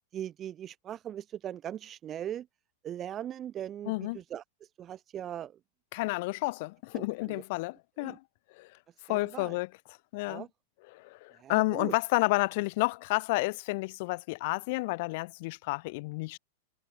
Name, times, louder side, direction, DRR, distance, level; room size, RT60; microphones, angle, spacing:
voice 1, 0.1-2.5 2.8-4.4 4.8-5.5 6.9-7.4 8.0-8.2 9.1-9.6 10.3-10.5 11.4-11.9, right 10 dB, 20° right, 1.2 m, -39 dB
voice 2, 3.9-4.2 5.9-8.2 8.6-8.7 9.1-9.7 10.1-10.4 10.9-16.4, left 24 dB, 40° left, 1.7 m, -30 dB
supercardioid pair, 180°, 0 cm